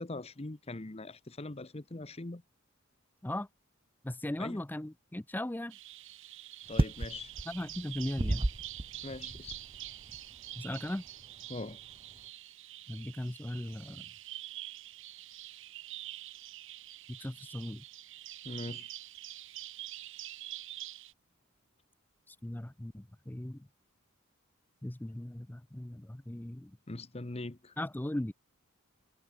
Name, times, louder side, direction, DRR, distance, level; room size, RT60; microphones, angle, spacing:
voice 1, 0.0-2.4 4.4-4.6 6.7-7.3 9.0-9.6 11.5-11.8 18.4-18.9 26.9-27.7, left 2 dB, 30° left, 0.9 m, -41 dB
voice 2, 4.0-5.8 7.5-8.5 10.6-11.0 12.9-14.1 17.1-17.8 22.3-23.7 24.8-26.8 27.8-28.3, left 1 dB, 10° left, 0.5 m, -38 dB
Bird vocalization bird call bird song, 5.7-21.1, right 14 dB, 60° right, 1.2 m, -46 dB
sound 1, 6.7-12.2, right 1 dB, 25° right, 0.8 m, -35 dB
head